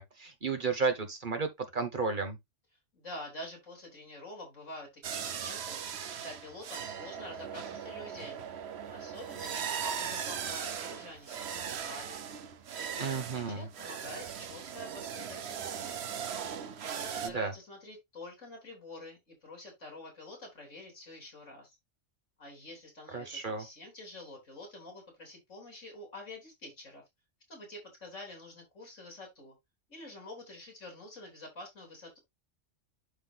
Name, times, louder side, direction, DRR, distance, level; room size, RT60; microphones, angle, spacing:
voice 1, 0.0-2.4 13.0-13.7 17.2-17.5 23.1-23.7, right 4 dB, 45° right, 1.3 m, -33 dB
voice 2, 2.9-5.8 6.1-8.5 8.9-12.2 12.8-16.0 16.8-21.8 22.4-27.0 27.5-29.6 29.9-32.2, left 1 dB, 85° left, 3.7 m, -47 dB
sound 1, 5.0-17.3, right 7 dB, 65° right, 1.0 m, -39 dB
11.5 x 4.2 x 2.4 m
omnidirectional pair, 1.3 m